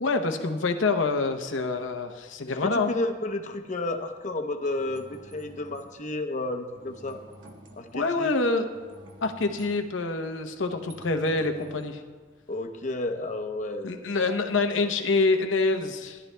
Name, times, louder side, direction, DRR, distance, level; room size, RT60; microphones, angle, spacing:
voice 1, 0.0-2.9 7.9-8.6 9.2-12.0 13.8-16.2, left 3 dB, 80° left, 6 dB, 0.8 m, -26 dB
voice 2, 2.5-7.2 7.7-8.3 12.5-13.9, left 2 dB, 40° left, 6 dB, 0.8 m, -32 dB
sound 1, 4.6-6.0 6.7-8.1 8.7-12.7, right 1 dB, 70° right, 1.3 m, -50 dB
17.5 x 11.0 x 2.2 m, 1.4 s
head